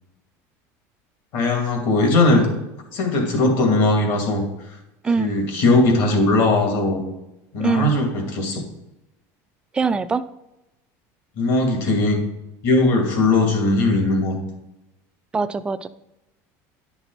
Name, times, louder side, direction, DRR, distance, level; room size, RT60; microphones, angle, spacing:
voice 1, 1.3-2.5 2.9-4.4 5.2-7.0 7.5-8.6 11.4-12.2 12.6-14.3, left 2 dB, 55° left, 2 dB, 2.4 m, -19 dB
voice 2, 7.6-7.9 9.7-10.2 15.3-15.9, right 4 dB, 10° right, 12 dB, 0.3 m, -22 dB
10.5 x 5.9 x 4.0 m, 0.91 s
cardioid pair, 160°, 8 cm